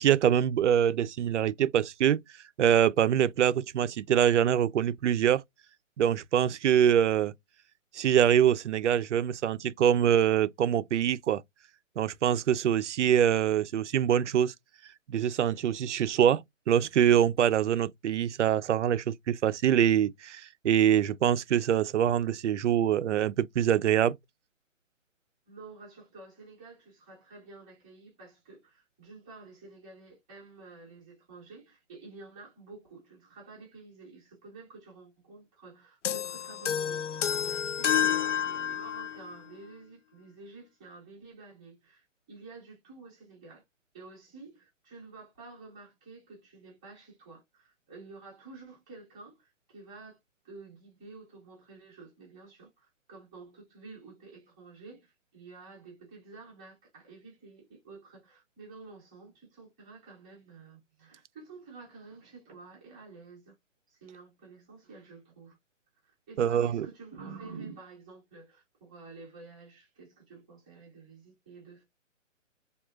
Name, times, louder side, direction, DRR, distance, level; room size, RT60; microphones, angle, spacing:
voice 1, 0.0-2.2 2.6-5.4 6.0-7.3 7.9-11.4 12.0-14.5 15.1-24.2 66.4-66.9, right 9 dB, 65° right, 0.5 m, -24 dB
voice 2, 25.5-43.6 43.9-50.2 50.4-63.5 63.9-65.6 66.0-71.9, right 4 dB, 5° right, 0.4 m, -50 dB
sound 1, 36.0-39.2, left 9 dB, 65° left, 0.6 m, -29 dB
3.6 x 2.3 x 2.4 m
hypercardioid pair, 150°, 39 cm